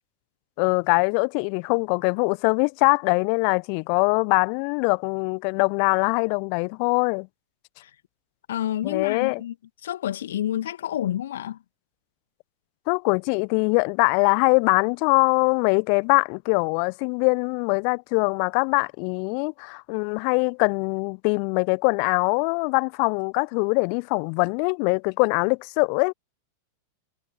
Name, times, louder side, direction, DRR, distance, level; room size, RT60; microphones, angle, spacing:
voice 1, 0.6-7.3 8.8-9.4 12.9-26.1, left 40 dB or more, 45° left, 1.0 m, -22 dB
voice 2, 8.5-9.5 9.8-11.6, left 11 dB, 60° left, 2.4 m, -28 dB
figure-of-eight pair, 90°, 0 cm